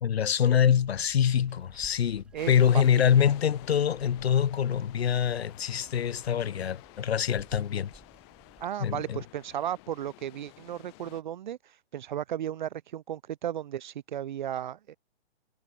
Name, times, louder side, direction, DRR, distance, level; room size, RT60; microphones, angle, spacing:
voice 1, 0.0-7.9 8.8-9.2, left 8 dB, 80° left, 1.1 m, -25 dB
Water, 0.7-8.7, right 4 dB, 5° right, 0.6 m, -56 dB
voice 2, 2.3-2.8 8.6-14.9, right 10 dB, 50° right, 0.5 m, -35 dB
sound 1, 2.4-11.2, left 28 dB, 25° left, 1.5 m, -51 dB
hypercardioid pair, 160°, 31 cm